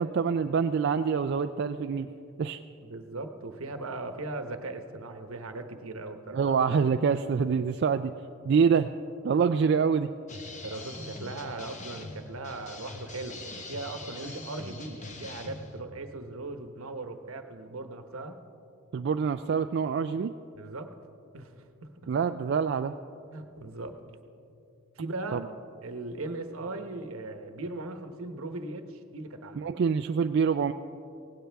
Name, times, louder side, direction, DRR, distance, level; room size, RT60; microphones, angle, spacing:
voice 1, 0.0-2.1 2.4-2.6 6.3-8.1 8.4-8.9 9.2-10.1 18.9-20.3 22.1-22.9 25.3-25.4 29.6-30.7, right 6 dB, 55° right, 8 dB, 0.3 m, -26 dB
voice 2, 2.8-6.5 10.4-18.4 20.6-20.9 21.3-21.5 21.8-22.1 23.2-24.0 25.0-25.5 25.8-29.8, right 2 dB, 75° right, 7 dB, 1.0 m, -39 dB
sound 1, 10.3-15.8, left 2 dB, 35° left, 1.1 m, -43 dB
17.5 x 16.5 x 3.5 m, 2.7 s
head